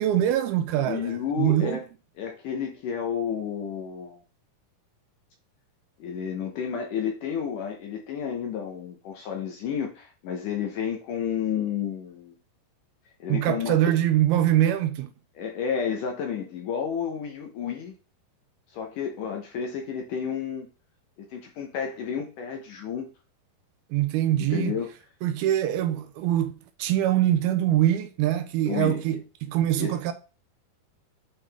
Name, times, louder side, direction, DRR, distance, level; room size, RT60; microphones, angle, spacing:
voice 1, 0.0-1.9 13.3-15.1 23.9-24.7 25.2-30.1, right 12 dB, 80° right, 2.5 m, -24 dB
voice 2, 0.9-1.8 2.2-4.2 6.0-12.4 13.2-13.9 15.4-17.9 18.7-20.7 21.2-23.1 24.4-24.9 28.7-29.0 29.7-29.9, left 7 dB, 70° left, 2.1 m, -31 dB
8.7 x 3.8 x 3.4 m
omnidirectional pair, 4.6 m